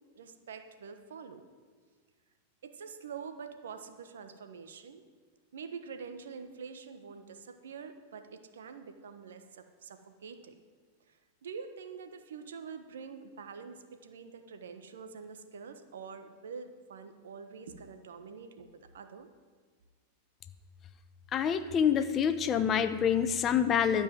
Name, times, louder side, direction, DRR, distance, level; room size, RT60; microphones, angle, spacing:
voice 1, 0.1-1.5 2.6-5.0 5.5-10.6 11.1-19.3, right 6 dB, 80° right, 8 dB, 1.1 m, -46 dB
voice 2, 21.3-24.0, left 8 dB, 30° left, 11 dB, 0.9 m, -27 dB
12.5 x 5.4 x 9.0 m, 1.5 s
hypercardioid pair, 110°, 0 cm